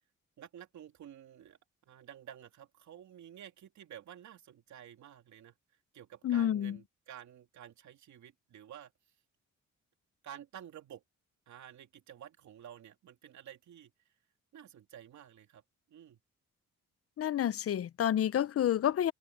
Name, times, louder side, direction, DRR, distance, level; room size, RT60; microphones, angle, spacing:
voice 1, 0.4-1.6 1.9-5.5 5.9-8.9 10.2-11.0 11.5-13.9 14.5-15.6 15.9-16.2, right 10 dB, 70° right, 2.7 m, -51 dB
voice 2, 6.2-6.8 17.2-19.1, left 10 dB, 50° left, 0.7 m, -29 dB
cardioid pair, 90°, 30 cm